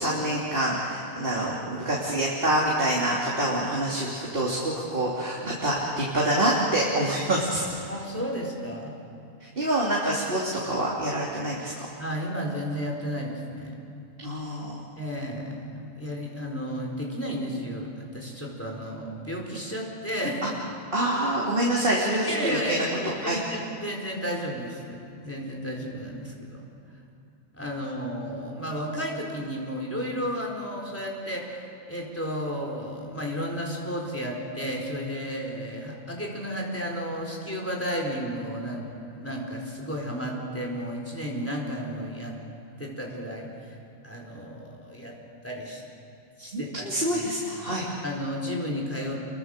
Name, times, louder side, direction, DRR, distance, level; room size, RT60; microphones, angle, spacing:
voice 1, 0.0-7.6 9.4-11.9 14.2-14.8 20.9-23.4 46.5-47.8, right 1 dB, 40° right, -5 dB, 3.3 m, -26 dB
voice 2, 7.9-9.0 12.0-13.7 15.0-20.5 22.2-26.6 27.5-31.6 31.9-42.3 42.8-43.5 44.0-45.2 45.4-45.8 46.4-47.3 48.0-49.2, equal, 10° left, -1 dB, 4.3 m, -33 dB
28.5 x 23.0 x 6.7 m, 2.8 s
omnidirectional pair, 1.5 m